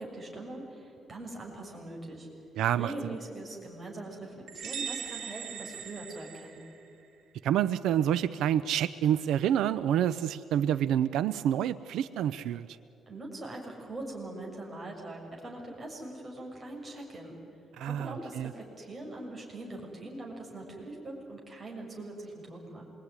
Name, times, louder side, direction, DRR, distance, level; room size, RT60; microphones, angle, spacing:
voice 1, 0.0-2.3 2.8-6.6 13.1-17.4 17.8-22.8, right 2 dB, 25° right, -1 dB, 6.6 m, -42 dB
voice 2, 2.6-2.9 7.4-12.7 17.8-18.5, right 10 dB, 90° right, 14 dB, 0.6 m, -28 dB
sound 1, 4.5-7.1, right 7 dB, 70° right, 3.5 m, -40 dB
27.0 x 22.5 x 9.7 m, 2.6 s
cardioid pair, 135°, 0 cm